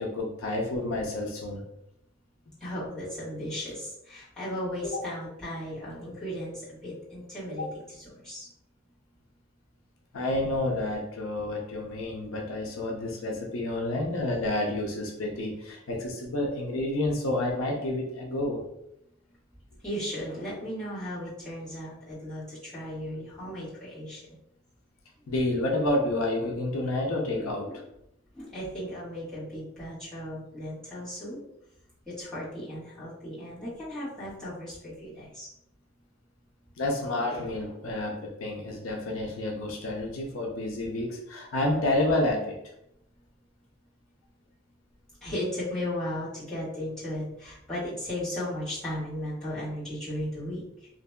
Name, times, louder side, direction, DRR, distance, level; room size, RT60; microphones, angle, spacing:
voice 1, 0.0-1.6 4.8-5.0 7.6-7.7 10.1-18.6 25.3-27.7 36.8-42.6, left 1 dB, 85° left, 0 dB, 0.6 m, -29 dB
voice 2, 2.6-7.7 8.2-8.5 19.8-24.4 27.4-27.8 28.3-31.4 32.1-35.5 45.2-50.9, left 1 dB, 5° left, -13 dB, 1.3 m, -36 dB
2.8 x 2.6 x 2.2 m, 0.80 s
head